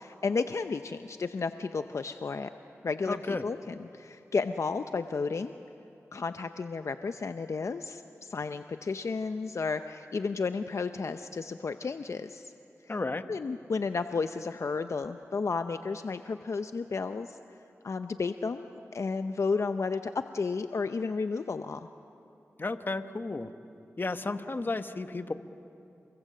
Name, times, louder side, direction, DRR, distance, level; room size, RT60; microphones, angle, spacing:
voice 1, 0.0-2.5 2.8-3.2 3.4-5.5 6.1-12.5 13.3-17.4 17.8-21.9, left 4 dB, 65° left, 9 dB, 0.6 m, -32 dB
voice 2, 3.1-3.5 12.9-13.2 22.6-23.5 24.0-25.3, left 3 dB, 40° left, 9 dB, 1.1 m, -33 dB
29.0 x 22.0 x 7.6 m, 2.7 s
wide cardioid pair, 65°, 5 cm